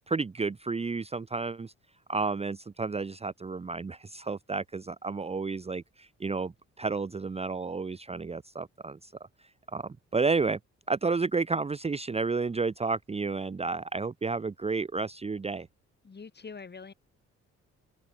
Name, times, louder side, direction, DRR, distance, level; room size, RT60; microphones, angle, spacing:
voice 1, 0.1-1.7 2.1-9.1 9.7-10.6 10.9-15.7, right 4 dB, 20° right, 0.8 m, -31 dB
voice 2, 16.0-16.9, left 5 dB, 35° left, 8.0 m, -44 dB
open air
cardioid pair, 90°, 30 cm